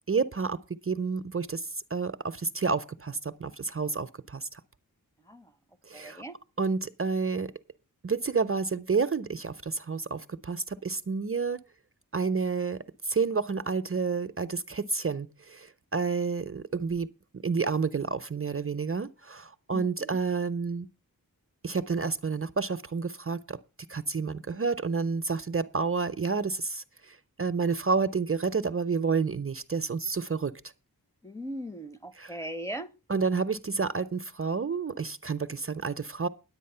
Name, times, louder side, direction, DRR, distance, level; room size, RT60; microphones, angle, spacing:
voice 1, 0.1-4.6 5.8-6.2 6.6-7.5 8.0-11.6 12.1-17.1 17.4-20.9 21.6-23.6 23.9-30.5 32.2-32.3 33.1-36.3, right 4 dB, 40° right, 0.6 m, -30 dB
voice 2, 5.9-6.4 19.7-20.2 31.2-32.9, equal, 10° left, 0.7 m, -39 dB
10.5 x 8.2 x 5.5 m
wide cardioid pair, 80°, 35 cm